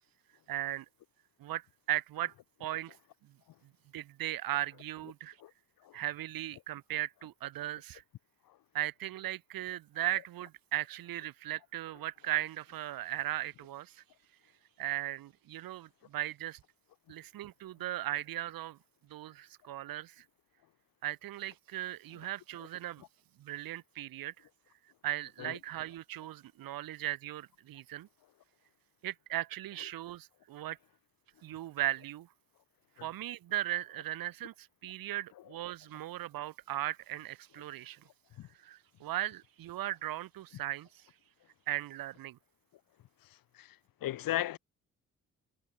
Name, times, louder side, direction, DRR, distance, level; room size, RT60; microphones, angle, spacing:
voice 1, 0.5-0.9 1.4-2.3 2.6-3.0 3.2-3.3 3.9-5.4 5.9-8.0 8.7-14.0 14.8-16.6 17.1-18.8 19.1-20.2 21.0-23.0 23.4-24.3 25.0-28.1 29.0-30.8 31.4-32.3 33.0-38.0 38.6-41.1 41.7-42.4, right 14 dB, 85° right, 5.7 m, -37 dB
voice 2, 44.0-44.6, left 14 dB, 85° left, 3.3 m, -34 dB
supercardioid pair, 60°, 34 cm